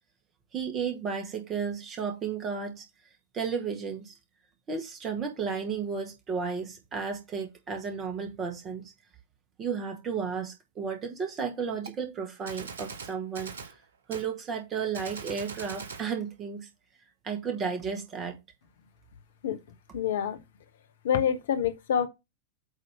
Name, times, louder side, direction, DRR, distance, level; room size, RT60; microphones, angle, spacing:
voice 1, 0.5-2.8 3.3-4.1 4.7-8.9 9.6-13.5 14.1-16.7 17.2-18.3, right 6 dB, 25° right, 1.7 m, -33 dB
Gunshot gunfire, 11.9-12.0 12.5-13.8 14.1-14.3 14.9-16.1, right 5 dB, 65° right, 0.9 m, -41 dB
voice 2, 19.9-20.4 21.0-22.1, left 8 dB, 60° left, 1.1 m, -26 dB
8.2 x 3.1 x 5.6 m
figure-of-eight pair, 90°, 0 cm